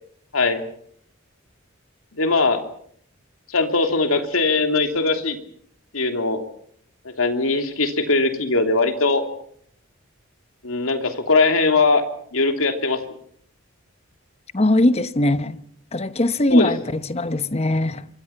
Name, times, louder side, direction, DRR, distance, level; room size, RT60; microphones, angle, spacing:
voice 1, 2.2-2.6 3.5-5.4 5.9-6.4 7.2-9.2 10.6-12.0 12.3-13.0 16.5-16.7, left 3 dB, 80° left, 3.0 m, -20 dB
voice 2, 14.5-15.6 15.9-18.1, left 1 dB, 30° left, 0.9 m, -20 dB
26.5 x 23.5 x 5.8 m
head